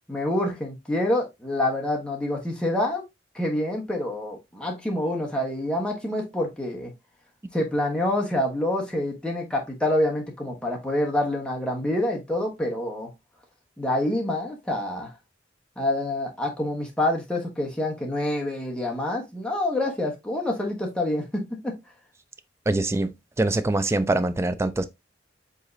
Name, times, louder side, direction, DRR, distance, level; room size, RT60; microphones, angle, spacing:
voice 1, 0.1-3.0 3.3-6.9 7.5-13.1 13.8-15.1 15.8-21.7, left 1 dB, 5° left, 1.1 m, -27 dB
voice 2, 22.7-24.8, right 2 dB, 15° right, 0.3 m, -24 dB
4.9 x 3.7 x 2.6 m
head